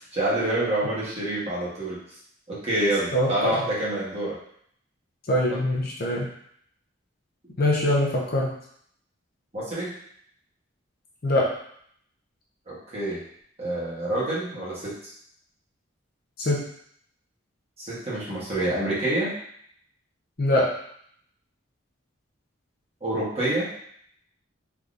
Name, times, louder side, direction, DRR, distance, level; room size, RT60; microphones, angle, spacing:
voice 1, 0.0-2.0 2.5-4.4 9.5-9.9 12.7-13.2 13.6-14.9 17.8-19.3 23.0-23.7, right 1 dB, 30° right, -8 dB, 1.2 m, -27 dB
voice 2, 3.1-3.6 5.3-6.3 7.6-8.5 11.2-11.5 16.4-16.6 20.4-20.7, left 1 dB, 50° left, -3 dB, 0.7 m, -23 dB
3.5 x 2.8 x 2.5 m, 0.66 s
head